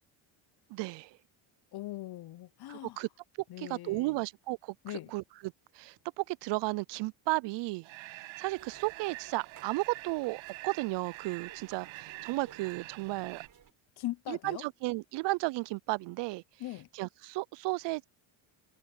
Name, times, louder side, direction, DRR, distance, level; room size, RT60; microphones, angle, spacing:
voice 1, 0.7-1.2 2.7-3.1 3.6-4.7 5.1-7.9 8.4-13.4 14.3-16.4 16.9-18.0, right 21 dB, 65° right, 0.5 m, -34 dB
voice 2, 1.7-3.0 3.5-4.2 4.8-5.1 14.0-14.6 16.6-16.9, left 16 dB, 55° left, 0.9 m, -40 dB
sound 1, 7.8-13.5, right 21 dB, 85° right, 7.0 m, -47 dB
sound 2, 8.4-13.7, right 8 dB, 45° right, 7.1 m, -57 dB
cardioid pair, 100°, 46 cm